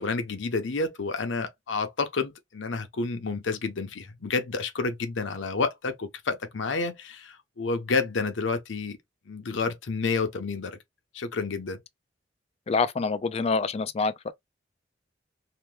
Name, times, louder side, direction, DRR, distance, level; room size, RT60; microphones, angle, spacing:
voice 1, 0.0-9.0 9.3-10.8 11.1-11.8, left 4 dB, 85° left, 0.7 m, -30 dB
voice 2, 12.7-14.3, left 4 dB, 35° left, 0.3 m, -26 dB
2.9 x 2.2 x 3.2 m
head